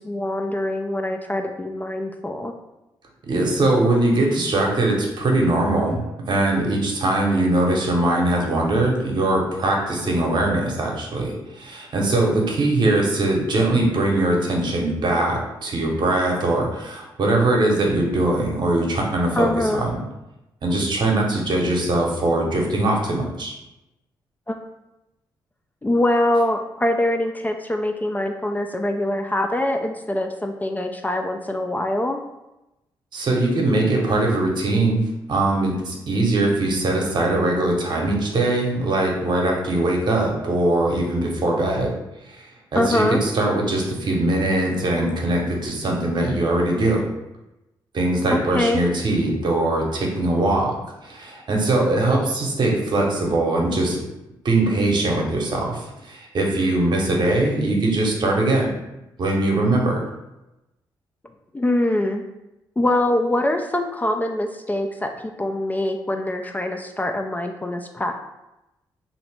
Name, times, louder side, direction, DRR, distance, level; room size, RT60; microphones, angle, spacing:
voice 1, 0.0-2.5 19.4-19.8 24.5-24.6 25.8-32.2 42.7-43.2 48.3-48.8 61.5-62.2 62.8-65.1 65.4-68.1, left 1 dB, 20° left, 5 dB, 0.3 m, -23 dB
voice 2, 3.3-19.9 20.6-23.5 33.1-35.0 35.3-41.9 42.3-42.4 42.7-47.0 47.9-50.7 51.0-54.0 54.4-58.7 59.2-60.0, right 2 dB, 55° right, -1 dB, 0.8 m, -21 dB
2.8 x 2.6 x 3.3 m, 0.94 s
supercardioid pair, 55°, 9 cm